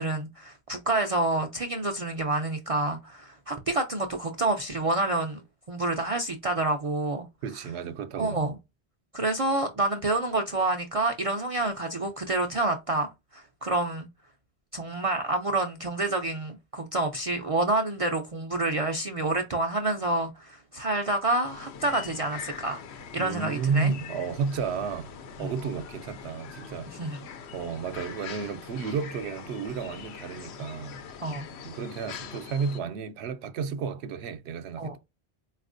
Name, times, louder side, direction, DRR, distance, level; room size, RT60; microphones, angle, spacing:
voice 1, 0.0-5.4 5.7-7.3 8.2-8.5 9.1-14.1 14.7-22.8 23.1-23.9 25.4-25.5 27.0-27.2 31.2-31.5 34.8-34.9, right 2 dB, 55° right, 0.4 m, -28 dB
voice 2, 7.4-8.5 23.2-25.1 25.4-27.2 27.5-31.0 31.6-35.0, right 5 dB, 85° right, 0.9 m, -32 dB
sound 1, 21.4-32.8, left 6 dB, 85° left, 0.9 m, -43 dB
4.1 x 2.4 x 2.5 m
omnidirectional pair, 1.1 m